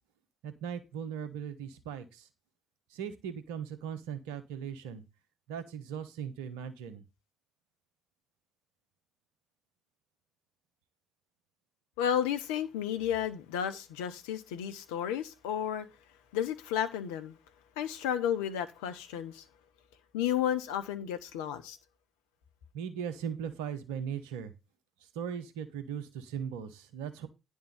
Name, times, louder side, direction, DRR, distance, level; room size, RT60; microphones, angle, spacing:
voice 1, 0.4-2.3 2.9-5.0 5.5-7.0 22.7-24.5 25.1-27.3, right 8 dB, 75° right, 1.0 m, -38 dB
voice 2, 12.0-15.9 16.3-17.4 17.8-19.4 20.1-21.8, left 9 dB, 75° left, 0.8 m, -32 dB
10.0 x 3.7 x 7.2 m
figure-of-eight pair, 40°, 0 cm